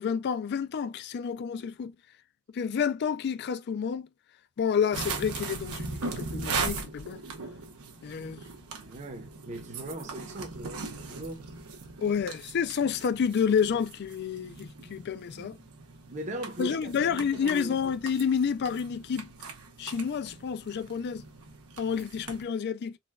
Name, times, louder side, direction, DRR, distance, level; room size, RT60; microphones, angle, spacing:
voice 1, 0.0-1.9 2.5-4.1 4.6-7.2 8.0-8.4 12.0-15.6 16.6-19.3 19.8-21.2 21.8-23.0, left 7 dB, 50° left, 0.3 m, -29 dB
sound 1, 4.9-22.4, right 4 dB, 75° right, 0.9 m, -39 dB
voice 2, 8.7-11.5 15.3-15.6 16.1-17.9, right 1 dB, 35° right, 0.7 m, -40 dB
4.0 x 2.1 x 2.3 m
head